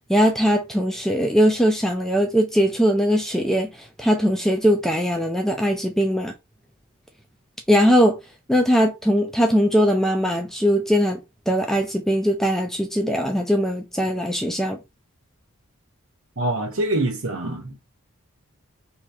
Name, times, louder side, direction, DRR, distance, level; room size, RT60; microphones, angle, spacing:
voice 1, 0.1-3.7 4.0-6.3 7.7-8.2 8.5-11.2 11.5-14.8, equal, ahead, 0.4 m, -20 dB
voice 2, 16.4-17.9, right 1 dB, 65° right, 1.0 m, -25 dB
3.0 x 2.8 x 3.3 m
head